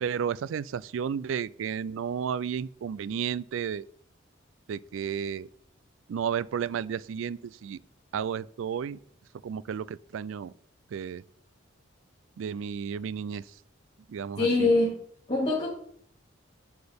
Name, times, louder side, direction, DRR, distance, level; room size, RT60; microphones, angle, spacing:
voice 1, 0.0-3.8 4.7-5.5 6.1-7.8 8.1-9.0 9.4-10.5 10.9-11.2 12.4-13.5 14.1-14.7, right 7 dB, 80° right, 0.3 m, -32 dB
voice 2, 14.4-14.9 15.3-15.7, left 2 dB, 35° left, 2.1 m, -23 dB
8.7 x 7.8 x 3.5 m
head